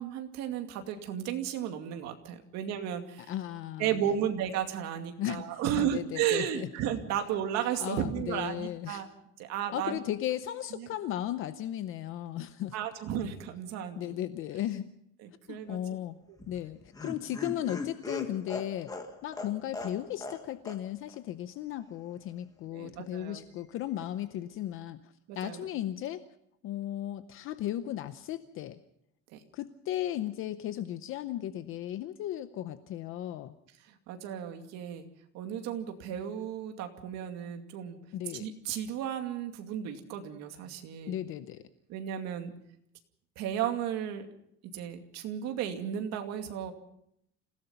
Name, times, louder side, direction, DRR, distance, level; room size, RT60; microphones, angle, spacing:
voice 1, 0.0-3.3 3.8-9.1 9.4-10.0 10.8-10.9 12.7-14.2 15.2-15.8 16.3-16.4 22.7-23.4 25.3-25.6 29.3-29.4 34.1-35.0 35.3-38.0 38.4-41.2 41.9-42.5 43.4-44.3 44.7-46.7, right 9 dB, 50° right, 5 dB, 2.5 m, -34 dB
voice 2, 3.3-4.1 5.2-5.4 5.8-6.7 7.8-9.0 9.7-12.8 13.9-14.9 15.5-16.2 16.5-18.9 19.2-26.2 26.6-28.8 29.5-33.6 38.1-38.5 41.1-41.6, left 12 dB, 35° left, 12 dB, 0.7 m, -36 dB
Laughter, 16.4-20.4 20.7-20.8 21.1-21.2, left 3 dB, 10° left, 1.7 m, -39 dB
27.0 x 17.0 x 5.7 m, 0.75 s
cardioid pair, 175°, 35 cm